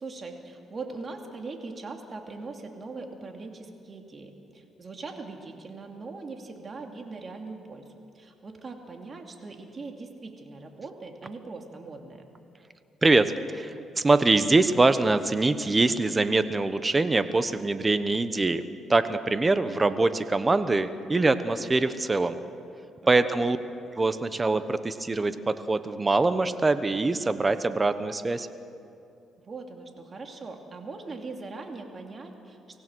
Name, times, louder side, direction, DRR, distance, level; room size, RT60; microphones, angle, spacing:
voice 1, 0.0-7.8 8.1-12.2 23.2-23.5 29.4-32.8, right 3 dB, 40° right, 3 dB, 2.6 m, -41 dB
voice 2, 13.0-18.6 18.9-22.4 23.1-23.6 23.9-28.5, right 3 dB, 25° right, 11 dB, 1.0 m, -24 dB
24.5 x 17.0 x 6.3 m, 2.8 s
cardioid pair, 90°, 0 cm